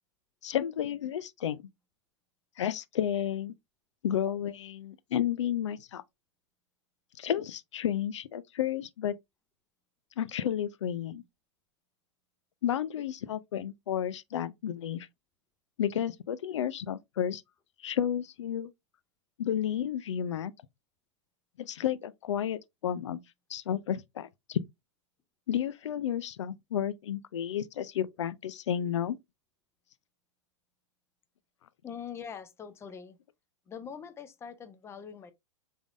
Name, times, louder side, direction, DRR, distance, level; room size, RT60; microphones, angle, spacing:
voice 1, 0.4-1.6 2.6-3.5 4.0-6.0 7.2-9.1 10.2-11.2 12.6-15.1 15.8-17.4 17.8-18.7 19.4-20.5 21.6-23.2 23.5-24.6 25.5-29.2, left 10 dB, 70° left, 0.4 m, -32 dB
voice 2, 31.8-33.2 33.7-35.3, left 7 dB, 15° left, 0.6 m, -43 dB
3.6 x 3.4 x 2.5 m
hypercardioid pair, 105°, 16 cm